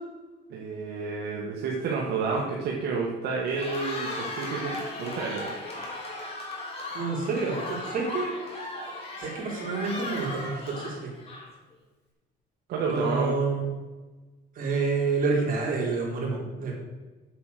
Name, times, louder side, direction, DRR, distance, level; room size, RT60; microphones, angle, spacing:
voice 1, 0.5-5.5 12.7-13.4, right 4 dB, 75° right, -2 dB, 1.7 m, -30 dB
Cheering, 3.4-11.7, left 2 dB, 35° left, 3.7 m, -36 dB
voice 2, 6.9-8.3 9.2-11.1 12.8-13.7 14.6-16.7, right 4 dB, 55° right, -2 dB, 3.8 m, -28 dB
8.2 x 7.7 x 6.8 m, 1.2 s
cardioid pair, 110°, 17 cm